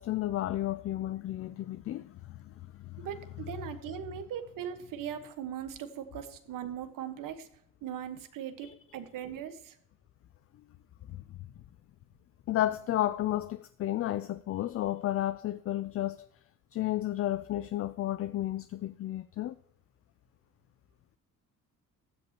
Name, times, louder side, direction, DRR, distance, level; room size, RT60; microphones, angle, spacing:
voice 1, 0.0-3.1 8.6-8.7 11.1-11.2 12.5-16.3 16.7-19.5, left 13 dB, 45° left, 0.4 m, -32 dB
voice 2, 3.0-7.5 7.8-9.8, right 9 dB, 75° right, 1.4 m, -39 dB
15.5 x 10.5 x 3.0 m
cardioid pair, 135°, 33 cm